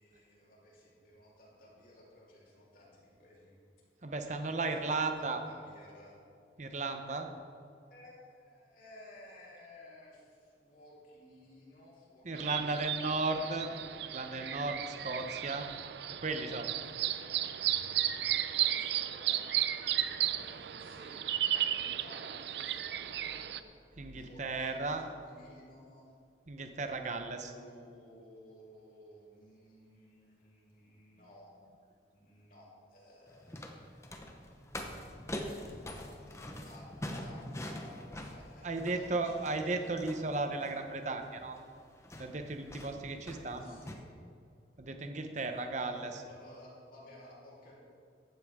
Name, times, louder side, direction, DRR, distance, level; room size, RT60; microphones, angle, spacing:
voice 1, 0.0-3.6 4.6-6.2 7.9-13.2 16.1-16.6 17.0-17.1 18.4-19.5 19.9-21.2 21.5-23.5 24.2-26.1 27.0-31.5 32.1-35.0 35.9-36.4 36.6-39.9 43.4-44.0 45.5-45.7 45.9-47.7, left 1 dB, 50° left, -5 dB, 3.6 m, -56 dB
voice 2, 4.0-5.4 6.6-7.3 12.2-13.7 14.1-15.7 16.2-16.6 24.0-25.0 26.5-27.5 38.6-41.6 42.2-43.7 44.8-46.2, right 3 dB, 40° right, 6 dB, 0.9 m, -35 dB
sound 1, 12.3-23.6, right 11 dB, 65° right, 0.5 m, -34 dB
sound 2, 33.3-43.9, left 1 dB, 15° left, 0.9 m, -45 dB
15.0 x 12.5 x 3.7 m, 2.3 s
head